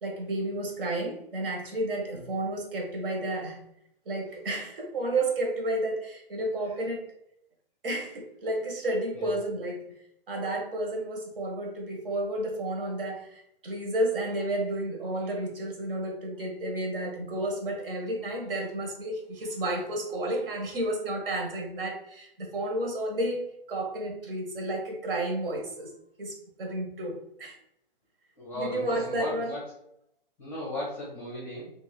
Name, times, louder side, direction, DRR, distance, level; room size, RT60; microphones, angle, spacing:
voice 1, 0.0-3.6 4.0-7.1 7.8-9.9 10.3-25.9 26.2-27.6 28.5-29.5, right 1 dB, 65° right, 2 dB, 1.2 m, -31 dB
voice 2, 28.4-29.7 30.4-31.7, left 1 dB, 10° left, -4 dB, 0.6 m, -36 dB
2.7 x 2.4 x 4.1 m, 0.75 s
hypercardioid pair, 150°, 29 cm